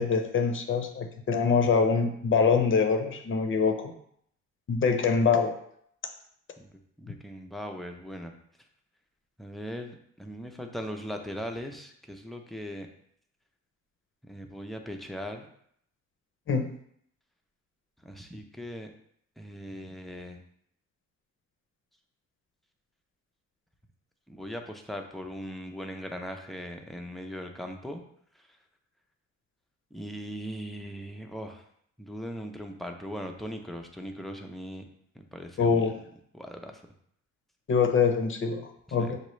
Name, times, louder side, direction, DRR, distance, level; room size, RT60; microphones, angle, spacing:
voice 1, 0.0-3.9 4.7-5.5 16.5-16.7 35.6-35.9 37.7-39.2, left 5 dB, 40° left, 6 dB, 0.7 m, -24 dB
voice 2, 7.0-8.3 9.4-12.9 14.2-15.5 18.0-18.9 19.4-20.4 24.3-28.0 28.3-28.6 29.9-31.6 32.0-34.9 35.1-35.9 36.3-36.8 38.9-39.1, equal, ahead, 3 dB, 0.5 m, -39 dB
6.4 x 2.4 x 3.1 m, 0.68 s
cardioid pair, 90°, 30 cm